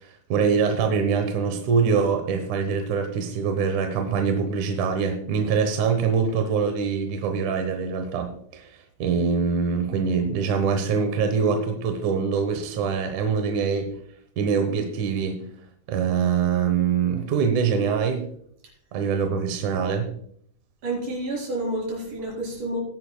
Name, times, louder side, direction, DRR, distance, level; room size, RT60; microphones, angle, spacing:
voice 1, 0.0-13.9 14.4-15.4 15.9-18.3 18.9-20.1, right 6 dB, 70° right, 6 dB, 1.9 m, -24 dB
voice 2, 20.8-22.8, right 1 dB, 50° right, -2 dB, 5.6 m, -29 dB
19.5 x 10.5 x 2.3 m, 0.65 s
omnidirectional pair, 4.8 m